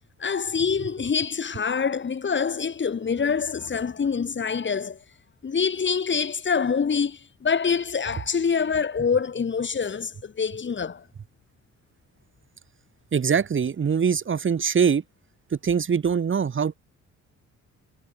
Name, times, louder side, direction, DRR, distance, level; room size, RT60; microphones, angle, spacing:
voice 1, 0.2-5.0 5.4-11.0, left 6 dB, 40° left, 3.0 m, -25 dB
voice 2, 13.1-15.0 15.6-16.7, right 6 dB, 40° right, 2.5 m, -23 dB
cardioid pair, 90°, 30 cm